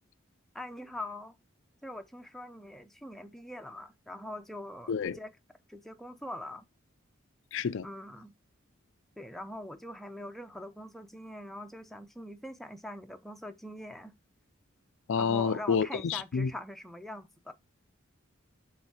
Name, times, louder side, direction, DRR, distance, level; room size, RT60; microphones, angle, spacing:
voice 1, 0.5-1.4 1.8-5.3 5.7-6.7 7.8-8.3 9.2-14.1 15.2-17.5, left 1 dB, ahead, 0.5 m, -43 dB
voice 2, 7.5-7.9 15.1-16.5, left 6 dB, 65° left, 0.4 m, -29 dB
6.8 x 3.7 x 4.5 m
head